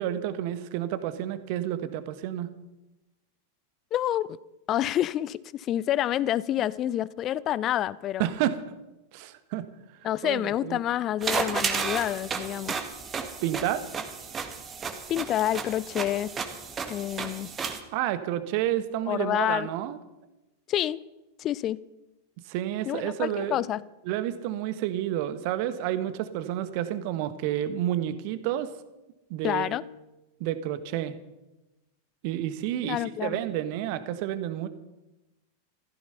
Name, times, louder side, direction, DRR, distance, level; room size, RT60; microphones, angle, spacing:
voice 1, 0.0-2.5 8.2-8.6 9.1-9.7 10.2-10.8 13.4-13.9 17.9-20.0 22.5-23.7 24.0-28.7 29.3-29.8 30.4-31.1 32.2-34.7, right 12 dB, 45° right, 12 dB, 1.3 m, -30 dB
voice 2, 3.9-4.4 4.7-8.3 10.0-12.8 15.1-16.3 16.9-17.5 19.1-19.7 20.7-21.0 21.4-21.8 22.9-23.8 29.4-29.8 32.8-33.4, left 12 dB, 30° left, 21 dB, 0.5 m, -28 dB
sound 1, 11.2-17.8, right 5 dB, 20° right, 1.8 m, -33 dB
15.5 x 14.0 x 5.6 m, 1.0 s
figure-of-eight pair, 90°, 0 cm